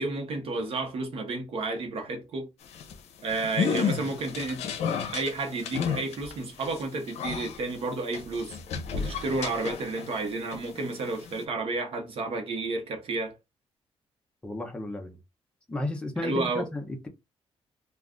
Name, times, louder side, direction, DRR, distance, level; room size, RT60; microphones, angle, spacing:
voice 1, 0.0-2.5 3.2-4.6 5.1-8.5 8.9-13.3 16.2-16.7, right 3 dB, 60° right, 0.9 m, -31 dB
sound 1, 2.6-10.2 10.5-11.4, left 6 dB, 85° left, 0.5 m, -32 dB
voice 2, 14.4-15.2 15.7-17.1, left 1 dB, 10° left, 0.5 m, -33 dB
2.4 x 2.4 x 3.5 m
wide cardioid pair, 175°, 11 cm